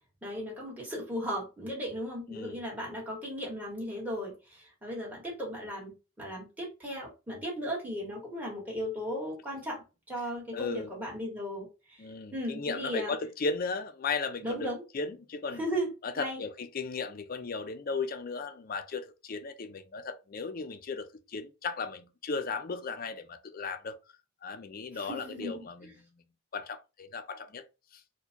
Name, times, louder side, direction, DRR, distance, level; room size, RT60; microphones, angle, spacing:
voice 1, 0.2-12.1 12.3-13.1 14.4-14.8 15.5-15.9 16.1-16.4 24.9-25.9, equal, 10° right, 1.5 m, -36 dB
voice 2, 10.5-10.9 12.0-14.7 14.9-15.6 16.0-24.0 24.4-25.9 26.5-27.6 27.9-28.0, left 4 dB, 45° left, 0.4 m, -36 dB
4.3 x 2.2 x 2.7 m
head